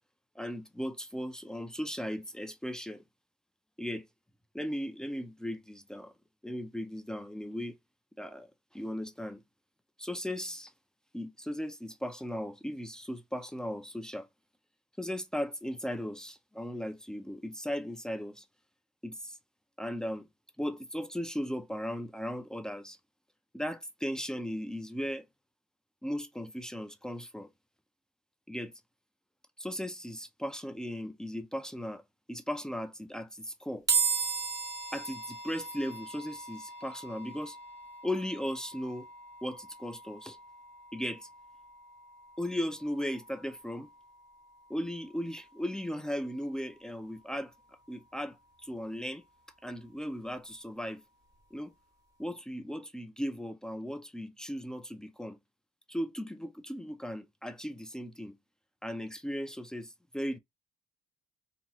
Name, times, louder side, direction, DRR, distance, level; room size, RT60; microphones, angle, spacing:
voice 1, 0.4-3.0 3.8-4.1 4.5-6.1 6.4-7.8 8.2-8.5 8.7-9.4 10.0-10.7 11.1-14.3 15.0-18.5 19.0-19.4 19.8-20.2 20.6-23.0 23.5-25.3 26.0-27.5 28.5-28.7 29.6-32.0 32.3-33.9 34.9-37.6 38.0-39.1 39.4-40.4 40.9-41.3 42.4-43.9 44.7-47.5 47.9-48.4 48.6-49.2 49.6-51.0 51.5-51.7 52.2-55.4 55.9-58.4 58.8-60.4, equal, 5° left, 0.4 m, -37 dB
sound 1, 33.9-47.2, right 5 dB, 20° right, 1.4 m, -38 dB
2.9 x 2.7 x 2.3 m
cardioid pair, 110°, 17 cm